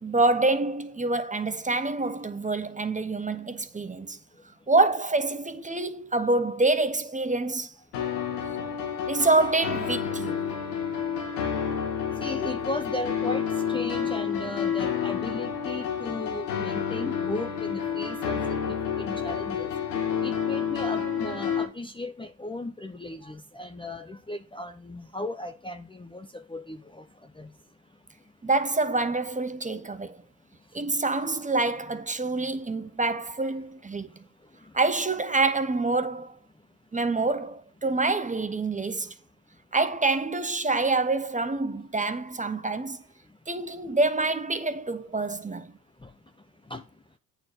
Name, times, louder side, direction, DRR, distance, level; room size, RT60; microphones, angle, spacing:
voice 1, 0.0-4.2 4.7-7.7 9.1-10.4 28.4-30.2 30.7-34.1 34.7-36.3 36.9-39.1 39.7-43.0 43.5-45.7, right 3 dB, 15° right, 1.1 m, -26 dB
sound 1, 7.9-21.6, left 7 dB, 90° left, 1.5 m, -29 dB
voice 2, 12.2-19.7 20.2-27.0 27.4-27.5 46.0-46.1 46.7-46.8, left 2 dB, 10° left, 0.8 m, -36 dB
8.8 x 4.0 x 6.6 m
hypercardioid pair, 60°, 45 cm